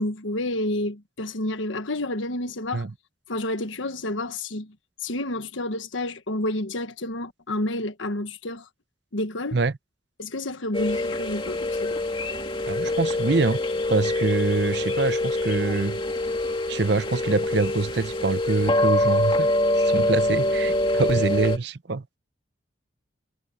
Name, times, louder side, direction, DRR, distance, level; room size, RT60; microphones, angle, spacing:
voice 1, 0.0-2.9 3.3-4.7 5.0-8.6 9.1-9.6 10.2-12.0, left 1 dB, 80° left, 1.4 m, -29 dB
sound 1, 10.7-21.6, left 1 dB, 25° left, 2.3 m, -25 dB
voice 2, 12.7-13.6 13.9-16.0 16.7-19.5 19.9-22.0, right 3 dB, 60° right, 0.7 m, -25 dB
head